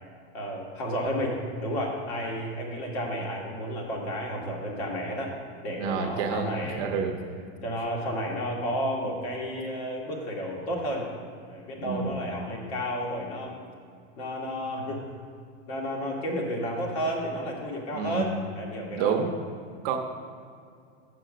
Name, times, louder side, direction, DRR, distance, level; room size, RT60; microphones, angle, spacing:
voice 1, 0.3-5.3 5.6-6.9 7.6-11.1 11.5-13.5 14.2-15.0 15.7-19.2, equal, 65° left, -1 dB, 2.2 m, -32 dB
voice 2, 5.8-7.2 11.8-12.2 17.9-18.3 19.0-19.3 19.8-20.0, right 6 dB, 35° right, 3 dB, 0.6 m, -29 dB
6.7 x 6.7 x 6.3 m, 2.2 s
supercardioid pair, 165°, 35 cm